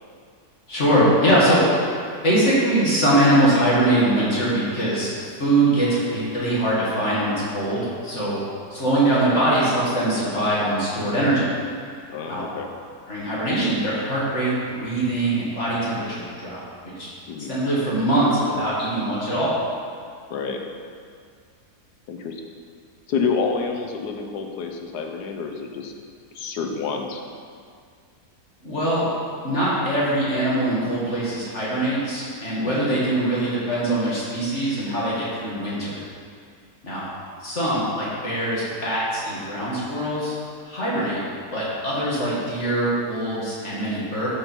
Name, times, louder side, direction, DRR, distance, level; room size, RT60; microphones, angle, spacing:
voice 1, 0.7-1.6 2.2-5.1 5.4-8.4 8.7-11.5 12.3-12.4 13.1-17.1 17.5-19.5 28.6-29.0 29.4-36.0 36.8-37.0 37.4-40.3 40.6-41.2 41.5-44.3, right 1 dB, 45° left, -8 dB, 2.4 m, -22 dB
voice 2, 12.1-12.7 17.3-17.5 20.3-20.6 22.1-22.4 23.1-25.9 26.3-27.2 32.6-32.9, left 5 dB, 75° left, 4 dB, 1.3 m, -28 dB
12.5 x 5.4 x 4.5 m, 2.2 s
omnidirectional pair, 1.8 m